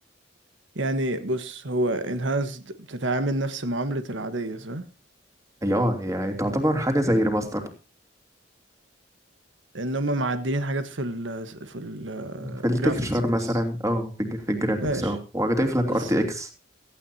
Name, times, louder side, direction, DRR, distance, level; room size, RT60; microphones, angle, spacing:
voice 1, 0.7-4.9 9.7-13.6 14.8-15.1 15.8-16.1, right 1 dB, 90° right, 1.4 m, -29 dB
voice 2, 5.6-7.7 12.4-16.5, equal, 20° right, 3.1 m, -25 dB
17.5 x 15.0 x 2.9 m
head